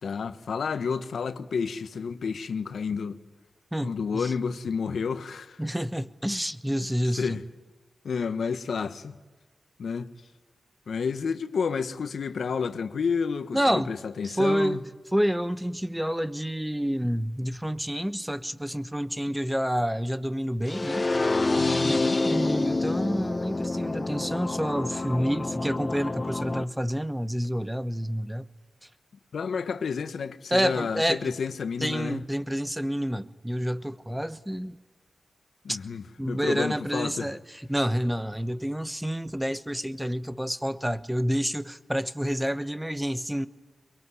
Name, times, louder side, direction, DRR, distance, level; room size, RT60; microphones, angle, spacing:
voice 1, 0.0-3.2 3.8-5.6 7.1-7.4 8.0-9.2 9.8-10.1 10.9-14.8 21.6-22.2 29.3-32.3 35.6-37.3, left 5 dB, 80° left, 1.2 m, -30 dB
voice 2, 3.7-4.3 5.6-7.4 13.5-13.9 14.2-21.1 21.8-28.4 30.5-31.3 31.8-34.8 35.7-35.8 36.2-37.4 37.7-43.5, equal, 5° right, 1.1 m, -28 dB
sound 1, 20.7-26.6, left 2 dB, 35° left, 0.9 m, -27 dB
22.5 x 21.5 x 9.8 m
cardioid pair, 50°, 0 cm